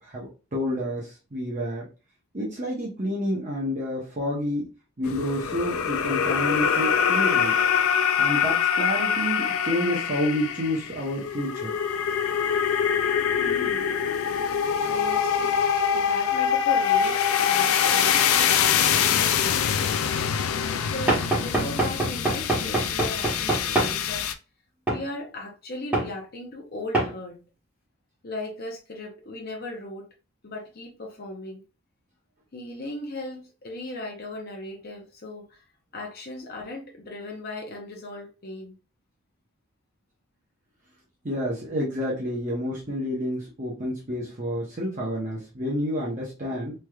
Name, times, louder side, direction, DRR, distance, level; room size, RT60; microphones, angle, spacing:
voice 1, 0.1-1.8 2.3-4.6 5.0-7.6 8.2-11.7 41.2-46.7, equal, 35° right, 0.8 m, -29 dB
sound 1, 5.0-24.3, left 8 dB, 75° left, 0.3 m, -24 dB
voice 2, 13.4-13.9 14.8-15.6 15.9-18.2 18.8-19.9 20.6-24.3 24.9-27.4 28.2-30.1 30.4-31.6 32.5-35.6 35.9-38.8, left 1 dB, 45° left, 0.7 m, -37 dB
Knock / Wood, 21.1-24.0 24.9-25.0 25.9-26.1 26.9-27.1, right 2 dB, 10° right, 1.1 m, -25 dB
3.3 x 3.0 x 2.3 m
head